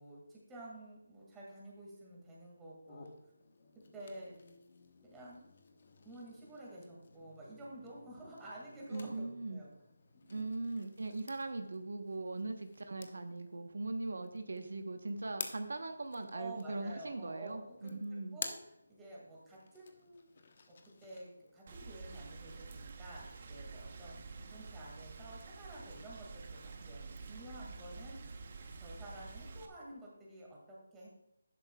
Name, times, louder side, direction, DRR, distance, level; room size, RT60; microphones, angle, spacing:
voice 1, 0.0-3.1 3.9-4.3 5.0-5.4 6.0-9.7 10.3-10.5 16.3-18.6 18.9-20.3 20.7-20.8 21.0-28.4 28.8-31.1, right 1 dB, 5° right, -5 dB, 2.0 m, -51 dB
sound 1, 2.8-21.6, left 4 dB, 35° left, 1.0 m, -52 dB
voice 2, 8.9-9.6 10.3-18.4, right 2 dB, 70° right, 6 dB, 1.1 m, -40 dB
Rain, 21.7-29.7, right 4 dB, 30° right, 0.9 m, -49 dB
12.0 x 10.5 x 2.3 m, 0.84 s
figure-of-eight pair, 175°, 0 cm